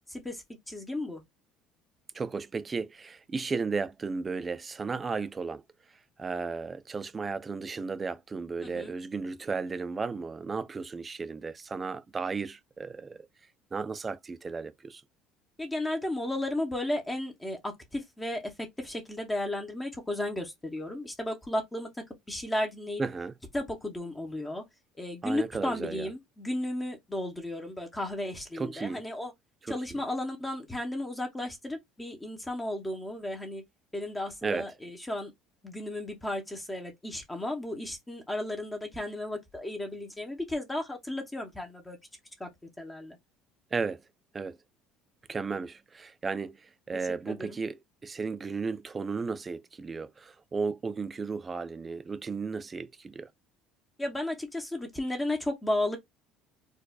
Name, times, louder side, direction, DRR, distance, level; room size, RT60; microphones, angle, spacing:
voice 1, 0.1-1.2 8.6-8.9 15.6-21.9 22.3-23.0 23.5-24.6 24.9-29.3 29.7-33.6 33.9-35.3 35.6-42.0 42.4-42.5 42.8-43.2 46.9-47.6 54.0-56.0, left 1 dB, 10° left, 0.8 m, -34 dB
voice 2, 2.1-5.6 6.2-13.2 13.7-15.0 23.0-23.3 25.2-26.1 28.5-29.0 29.7-30.0 34.4-34.7 43.7-44.0 44.3-44.6 45.3-53.3, right 4 dB, 20° right, 0.4 m, -34 dB
4.5 x 2.4 x 2.3 m
cardioid pair, 140°, 0 cm